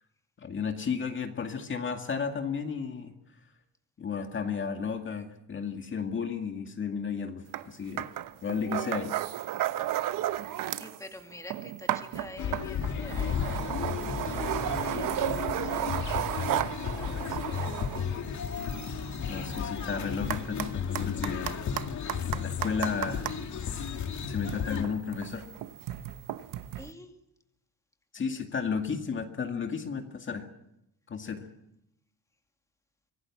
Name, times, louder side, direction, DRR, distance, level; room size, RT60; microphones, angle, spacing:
voice 1, 0.4-3.1 4.0-8.1 8.4-9.2 19.3-21.6 22.3-23.3 23.7-23.9 24.3-25.5 28.1-30.5 31.1-31.5, left 6 dB, 35° left, 4 dB, 2.1 m, -33 dB
sound 1, 7.5-7.7 8.0-11.0 11.3-23.4 24.1-26.9, right 13 dB, 75° right, 1.0 m, -34 dB
voice 2, 10.8-18.6 26.8-27.2, left 2 dB, 10° left, 4 dB, 2.3 m, -48 dB
sound 2, 12.4-24.8, left 7 dB, 60° left, 2.5 m, -33 dB
25.0 x 18.0 x 7.4 m, 0.81 s
cardioid pair, 135°, 33 cm